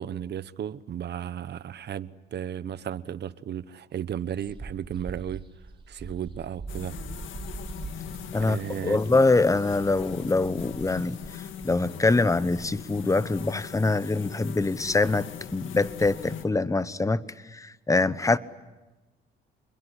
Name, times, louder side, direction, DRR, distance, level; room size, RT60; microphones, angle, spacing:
voice 1, 0.0-5.4 5.9-6.9 8.4-9.0, right 9 dB, 60° right, 16 dB, 1.1 m, -34 dB
sound 1, 4.2-13.8 14.2-14.3 14.5-15.5, right 3 dB, 25° right, 3.9 m, -44 dB
sound 2, 6.7-16.4, left 8 dB, 80° left, 2.0 m, -40 dB
voice 2, 8.3-11.2 11.6-17.2 17.5-18.4, left 3 dB, 15° left, 15 dB, 1.1 m, -24 dB
27.5 x 22.0 x 9.9 m, 1.1 s
cardioid pair, 90°, 20 cm